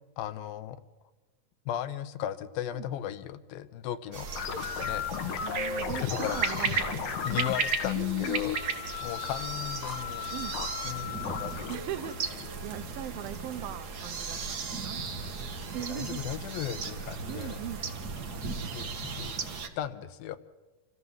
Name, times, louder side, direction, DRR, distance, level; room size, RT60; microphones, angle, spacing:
voice 1, 0.2-0.8 1.7-5.4 6.0-6.4 6.7-6.8 7.2-8.6 9.0-10.3 10.8-11.7 15.0-15.3 15.9-17.6 18.4-19.4 19.8-20.4, left 11 dB, 85° left, 12 dB, 2.7 m, -36 dB
sound 1, 4.1-19.7, right 5 dB, 65° right, 0.9 m, -36 dB
sound 2, 4.4-13.3, left 9 dB, 70° left, 3.0 m, -35 dB
voice 2, 5.4-7.5 8.0-8.4 10.3-10.6 11.7-15.0 15.7-16.2 17.3-17.9, right 11 dB, 85° right, 12 dB, 2.7 m, -40 dB
26.0 x 15.5 x 7.4 m, 1.2 s
omnidirectional pair, 4.1 m